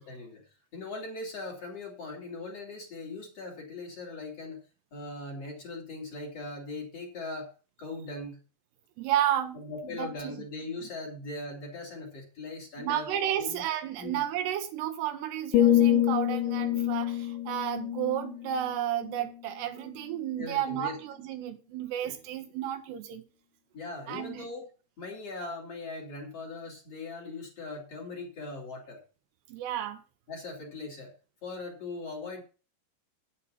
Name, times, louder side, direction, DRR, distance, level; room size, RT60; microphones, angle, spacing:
voice 1, 0.1-0.4 0.7-4.6 4.9-7.5 7.8-8.4 9.5-13.1 13.4-13.6 14.0-14.2 20.4-21.0 23.7-24.7 25.0-29.0 30.3-31.1 31.4-32.4, left 3 dB, 40° left, 3.0 m, -40 dB
voice 2, 9.0-9.6 10.0-10.4 12.8-23.2 24.1-24.5 29.5-30.0, right 11 dB, 75° right, 2.7 m, -32 dB
sound 1, 15.5-19.5 19.9-20.2, left 12 dB, 90° left, 3.1 m, -27 dB
9.7 x 7.3 x 5.6 m
omnidirectional pair, 5.1 m